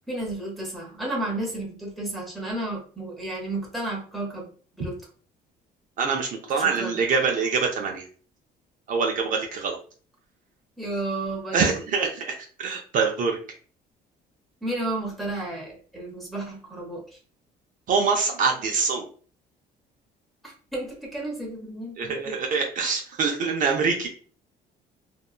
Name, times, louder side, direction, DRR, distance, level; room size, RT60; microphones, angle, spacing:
voice 1, 0.1-4.5 4.8-5.0 6.6-7.0 10.8-11.7 14.6-17.0 20.4-22.4, right 2 dB, ahead, -3 dB, 0.9 m, -32 dB
voice 2, 6.0-8.1 8.9-9.8 11.5-13.4 17.9-19.0 22.0-24.1, right 5 dB, 50° right, 1 dB, 0.5 m, -25 dB
2.7 x 2.2 x 2.3 m, 0.41 s
cardioid pair, 110°, 17 cm